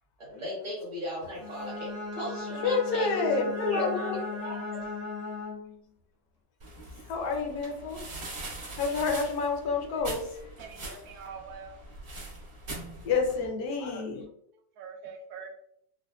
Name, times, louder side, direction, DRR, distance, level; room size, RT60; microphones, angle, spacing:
voice 1, 0.2-3.3 3.5-3.9 4.4-4.8, left 1 dB, 20° right, -6 dB, 1.2 m, -36 dB
Bowed string instrument, 1.3-5.8, left 3 dB, 45° left, 0.6 m, -37 dB
voice 2, 2.6-4.2 7.1-8.0 8.8-10.5 10.8-11.0 13.0-14.3, left 4 dB, 75° left, 3 dB, 1.1 m, -29 dB
sound 1, 6.6-13.5, right 2 dB, 55° right, 1.6 m, -42 dB
voice 3, 10.6-11.8 14.8-15.5, right 5 dB, 75° right, 3 dB, 1.1 m, -44 dB
4.2 x 2.1 x 2.2 m, 0.71 s
omnidirectional pair, 1.7 m